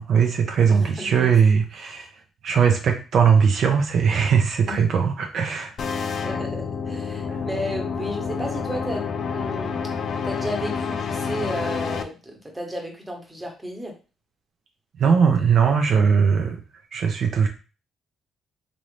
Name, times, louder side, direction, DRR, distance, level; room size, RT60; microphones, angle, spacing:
voice 1, 0.0-2.1 2.4-5.7 7.3-7.4 15.0-16.6 16.9-17.5, right 6 dB, 65° right, 3 dB, 0.5 m, -19 dB
voice 2, 0.7-1.3 4.7-4.8 6.2-9.8 10.2-14.0, equal, 10° right, 1 dB, 1.0 m, -33 dB
sound 1, 5.8-12.0, left 6 dB, 60° left, 0.4 m, -28 dB
3.0 x 2.6 x 3.2 m, 0.34 s
cardioid pair, 90°, 0 cm